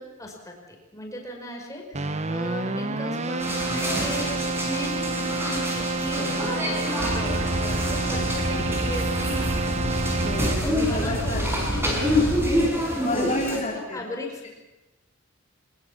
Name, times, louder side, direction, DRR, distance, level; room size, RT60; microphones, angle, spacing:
voice 1, 0.0-9.7 10.6-12.2 13.1-13.6 13.9-14.5, left 1 dB, 15° left, 1 dB, 5.3 m, -37 dB
Keyboard (musical), 1.9-10.9, right 3 dB, 35° right, 1.1 m, -29 dB
sound 1, 3.4-13.6, left 1 dB, 10° right, 5.8 m, -28 dB
sound 2, 7.0-12.7, right 1 dB, 65° right, 3.4 m, -29 dB
voice 2, 8.1-8.8 10.2-12.4 13.0-14.0, left 1 dB, 35° left, -3 dB, 3.6 m, -31 dB
23.0 x 21.5 x 7.4 m, 1.0 s
head